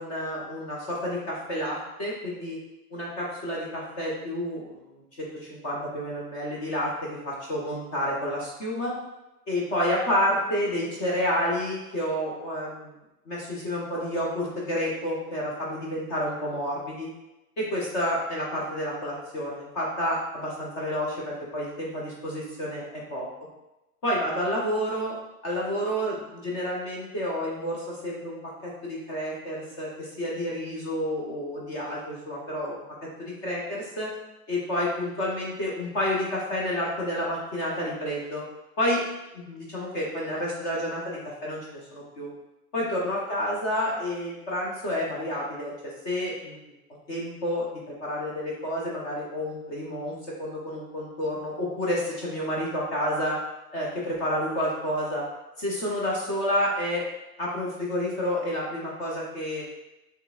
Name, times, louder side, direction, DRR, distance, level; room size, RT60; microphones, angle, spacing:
voice 1, 0.0-2.6 2.9-8.9 9.5-12.9 13.3-17.1 17.6-23.3 24.0-25.2 25.4-34.1 34.5-38.4 38.8-39.0 39.3-42.3 42.7-46.6 47.1-53.4 53.7-55.2 55.6-57.1 57.4-59.6, equal, 15° left, -4 dB, 0.6 m, -30 dB
6.5 x 3.4 x 2.3 m, 0.96 s
figure-of-eight pair, 110°, 47 cm